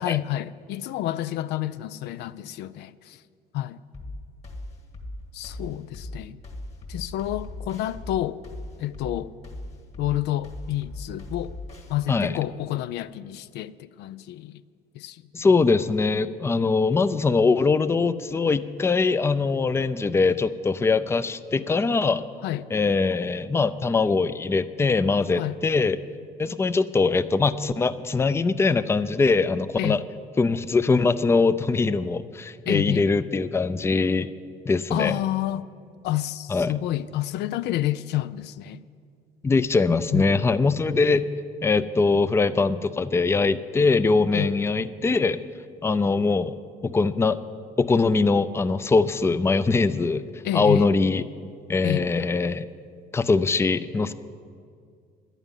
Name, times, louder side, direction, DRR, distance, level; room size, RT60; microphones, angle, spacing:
voice 1, 0.0-3.2 3.5-3.8 5.3-6.4 6.9-8.4 8.8-9.3 10.0-11.5 11.9-14.6 14.9-15.2 22.4-22.7 25.4-25.6 29.8-30.0 32.7-33.1 34.9-35.7 36.0-38.8 40.1-40.5 44.3-44.5 50.4-50.9 51.8-52.1, left 13 dB, 80° left, 0.4 m, -29 dB
sound 1, 3.9-11.9, left 2 dB, 40° left, 1.9 m, -38 dB
voice 2, 12.1-12.4 15.3-22.2 22.7-26.0 26.4-30.0 30.4-34.3 34.7-35.2 36.5-36.7 39.4-41.3 41.6-45.4 45.8-46.6 46.8-47.4 47.8-50.2 50.5-51.2 51.7-52.6 53.1-54.1, left 4 dB, 15° left, 0.4 m, -22 dB
11.0 x 9.0 x 9.9 m
cardioid pair, 110°, 17 cm